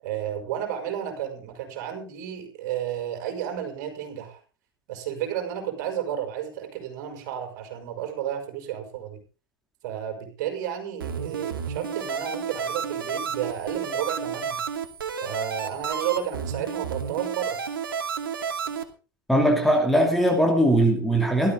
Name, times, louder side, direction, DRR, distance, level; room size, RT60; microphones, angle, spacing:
voice 1, 0.0-4.4 4.9-9.2 9.8-14.6 15.2-17.6, right 10 dB, 55° right, 5.8 m, -32 dB
sound 1, 11.0-18.8, right 6 dB, 75° right, 2.4 m, -31 dB
voice 2, 19.3-21.5, right 1 dB, ahead, 2.5 m, -20 dB
17.0 x 13.0 x 3.7 m
hypercardioid pair, 110°, 12 cm